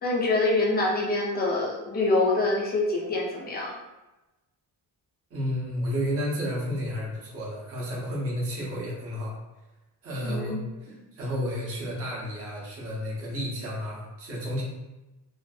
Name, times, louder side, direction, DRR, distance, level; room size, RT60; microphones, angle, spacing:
voice 1, 0.0-3.7 10.2-10.6, left 2 dB, 25° left, -2 dB, 0.4 m, -25 dB
voice 2, 5.3-9.4 10.0-10.6 10.8-14.6, equal, 30° right, -5 dB, 0.6 m, -31 dB
2.6 x 2.4 x 2.3 m, 1.0 s
cardioid pair, 170°, 44 cm